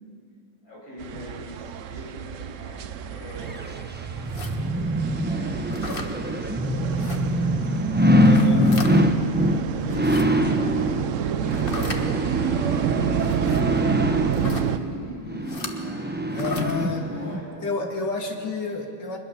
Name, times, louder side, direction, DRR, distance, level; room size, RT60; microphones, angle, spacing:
voice 1, 0.6-7.6 8.8-13.6 14.1-17.6, equal, 85° left, -5 dB, 8.6 m, -42 dB
sound 1, 1.0-14.8, right 9 dB, 65° right, 0.8 m, -29 dB
sound 2, 3.5-17.4 17.9-18.0, equal, 15° right, 0.4 m, -24 dB
sound 3, 4.3-4.6 5.7-6.1 7.0-7.2 8.1-8.9 9.8-10.2 11.5-12.0 13.2-13.6 14.3-14.7 15.5-15.7 16.3-16.7, left 3 dB, 30° left, 1.4 m, -36 dB
voice 2, 8.2-8.8 16.3-17.1 17.6-19.2, left 3 dB, 65° left, 2 dB, 2.8 m, -29 dB
24.0 x 21.0 x 7.1 m, 2.6 s
omnidirectional pair, 2.0 m